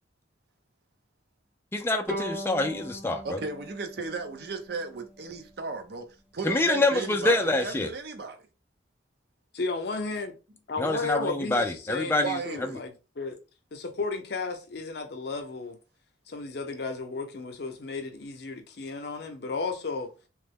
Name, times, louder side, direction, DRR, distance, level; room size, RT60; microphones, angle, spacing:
voice 1, 1.7-3.4 6.4-7.9 10.8-12.4, left 2 dB, 15° left, 0.4 m, -26 dB
Bowed string instrument, 2.1-5.4, equal, 5° right, 0.9 m, -39 dB
voice 2, 3.2-8.4 12.2-12.8, right 4 dB, 60° right, 0.6 m, -35 dB
voice 3, 9.5-10.4 10.7-13.4 13.7-15.8 16.3-20.1, left 3 dB, 60° left, 0.6 m, -34 dB
3.0 x 2.1 x 3.5 m
head